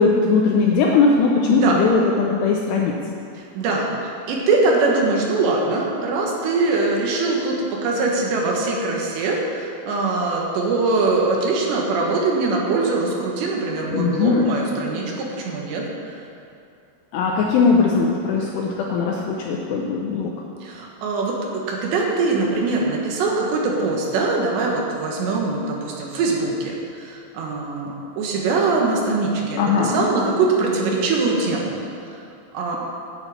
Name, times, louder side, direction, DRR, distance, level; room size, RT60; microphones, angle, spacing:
voice 1, 0.0-2.9 13.9-14.5 17.1-20.3 29.6-30.1, left 4 dB, 80° left, -1 dB, 2.5 m, -19 dB
voice 2, 3.3-15.8 16.1-16.2 20.6-31.7 32.5-32.8, right 3 dB, 70° right, -1 dB, 3.4 m, -22 dB
10.5 x 7.4 x 8.2 m, 2.5 s
omnidirectional pair, 5.6 m